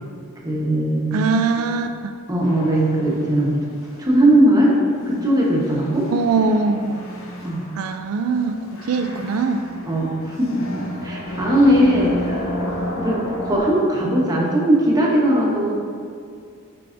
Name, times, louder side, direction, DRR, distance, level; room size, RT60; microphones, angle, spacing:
voice 1, 0.4-1.3 2.3-3.6 4.0-4.7 5.1-6.1 7.4-7.7 9.8-12.6 13.0-15.7, right 1 dB, 20° right, -3 dB, 1.0 m, -19 dB
voice 2, 1.1-2.1 6.1-7.1 7.7-9.7, right 4 dB, 80° right, 7 dB, 0.3 m, -22 dB
sound 1, 2.4-13.6, equal, 70° left, 0.8 m, -33 dB
9.2 x 4.8 x 2.6 m, 2.2 s
head